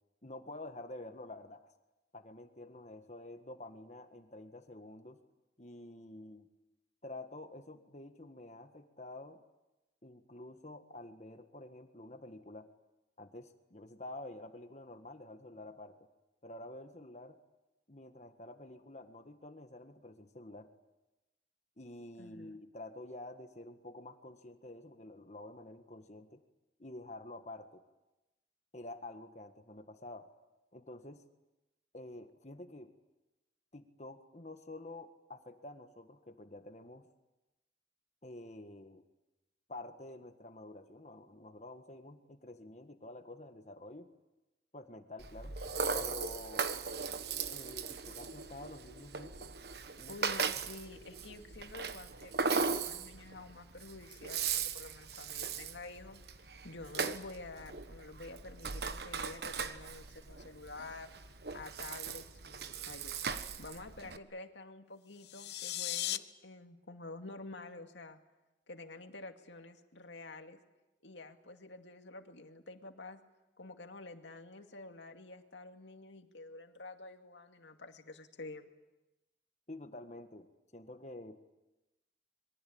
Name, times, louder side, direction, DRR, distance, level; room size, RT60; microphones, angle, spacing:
voice 1, 0.2-1.7 2.1-5.2 5.6-6.5 7.0-9.4 10.0-12.7 13.2-16.1 16.4-17.4 17.9-20.7 21.8-26.4 26.8-27.8 28.7-30.3 30.7-31.2 31.9-32.9 33.7-37.1 38.2-39.0 39.7-44.1 44.7-45.6 45.9-46.7 47.5-49.5 50.0-50.2 79.7-81.4, left 2 dB, 40° left, 7 dB, 1.6 m, -49 dB
voice 2, 22.2-22.5 50.1-56.2 56.6-63.2 63.6-68.2 68.7-70.6 71.0-73.2 73.6-78.7, left 2 dB, 80° left, 5 dB, 2.3 m, -49 dB
Rattle (instrument), 45.2-64.2, right 5 dB, 60° right, 1.2 m, -38 dB
sound 1, 65.1-66.2, left 14 dB, 65° left, 0.9 m, -37 dB
26.0 x 23.0 x 8.7 m, 1.0 s
head